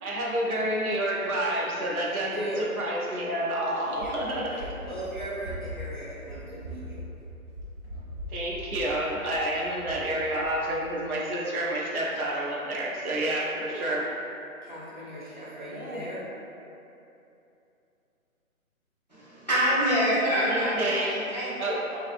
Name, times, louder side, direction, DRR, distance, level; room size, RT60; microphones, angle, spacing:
voice 1, 0.0-4.6 8.3-14.1 15.7-16.1 20.3-21.2 21.6-21.8, right 1 dB, 85° right, -3 dB, 0.7 m, -29 dB
voice 2, 2.1-2.7 3.8-7.0 13.5-14.0 14.6-16.2, right 1 dB, 35° right, -8 dB, 0.4 m, -38 dB
Run, 3.9-10.9, left 1 dB, 60° right, 1.0 m, -41 dB
voice 3, 19.1-21.5 21.9-22.0, equal, 35° left, -10 dB, 0.4 m, -26 dB
2.5 x 2.4 x 2.5 m, 2.8 s
hypercardioid pair, 165°, 42 cm